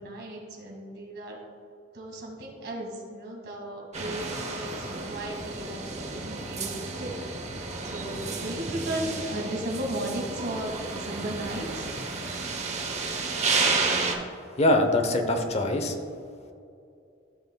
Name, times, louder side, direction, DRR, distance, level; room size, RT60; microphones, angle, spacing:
voice 1, 0.0-1.4 1.9-7.2 7.6-11.9, right 1 dB, 60° right, -1 dB, 1.9 m, -35 dB
sound 1, 3.9-14.1, right 4 dB, 35° right, 0.9 m, -31 dB
voice 2, 14.6-16.0, left 1 dB, 35° left, 6 dB, 0.8 m, -23 dB
13.5 x 5.9 x 2.2 m, 2.5 s
head